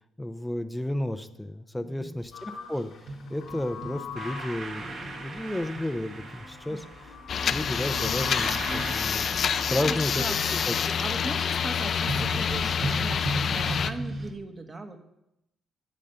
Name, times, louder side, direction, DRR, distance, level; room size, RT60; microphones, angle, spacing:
voice 1, 0.2-6.9 7.5-9.3 9.7-10.2 10.7-10.8, left 1 dB, 5° left, 8 dB, 0.6 m, -32 dB
voice 2, 1.8-2.1 6.6-6.8 9.7-15.0, right 2 dB, 30° right, 6 dB, 1.5 m, -39 dB
sound 1, 2.2-2.4 2.7-11.1 11.5-14.3, right 2 dB, 60° right, 1.7 m, -37 dB
sound 2, 2.3-8.9 9.6-10.1, left 5 dB, 85° left, 2.2 m, -42 dB
sound 3, 7.3-13.9, left 7 dB, 55° left, 0.6 m, -27 dB
8.6 x 7.4 x 6.8 m, 0.86 s
cardioid pair, 90°, 0 cm